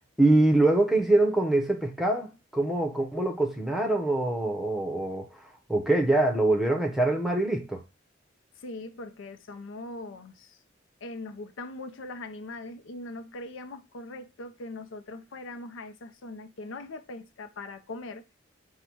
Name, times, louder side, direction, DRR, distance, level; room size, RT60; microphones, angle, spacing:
voice 1, 0.2-7.8, right 2 dB, ahead, 0.7 m, -24 dB
voice 2, 8.6-10.6 11.0-18.2, left 2 dB, 80° left, 0.5 m, -41 dB
5.4 x 2.2 x 4.5 m
head